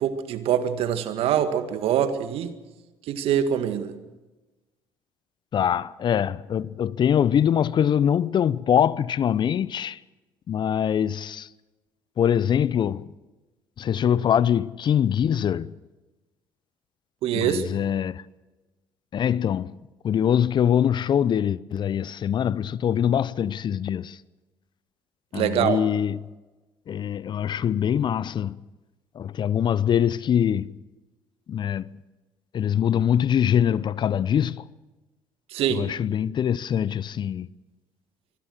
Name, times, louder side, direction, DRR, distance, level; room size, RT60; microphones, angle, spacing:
voice 1, 0.0-2.5 3.1-3.9 17.2-17.6 25.3-25.8 35.5-35.8, right 9 dB, 60° right, 1.9 m, -24 dB
voice 2, 5.5-10.0 10.5-11.5 12.2-13.1 13.8-15.7 17.3-18.2 19.1-24.2 25.3-26.2 26.9-28.7 29.1-30.8 31.5-32.0 32.5-34.6 35.7-37.5, left 9 dB, 45° left, 0.7 m, -23 dB
24.5 x 19.5 x 6.4 m
hypercardioid pair, 55°, 11 cm